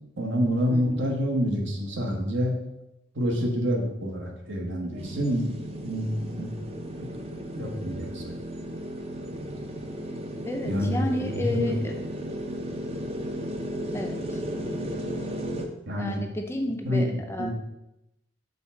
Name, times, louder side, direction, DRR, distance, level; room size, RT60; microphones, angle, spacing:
voice 1, 0.2-2.6 3.1-5.4 5.8-6.5 7.0-7.1 7.5-8.3 10.6-11.7 15.9-16.2 16.8-17.1 17.4-17.5, equal, 65° right, 1 dB, 1.2 m, -27 dB
voice 2, 0.7-1.1 10.4-11.9 13.9-14.4 16.0-17.5, left 1 dB, 15° left, 3 dB, 0.5 m, -31 dB
sound 1, 5.0-15.6, equal, 30° right, 0.6 m, -35 dB
5.4 x 3.5 x 5.7 m, 0.88 s
head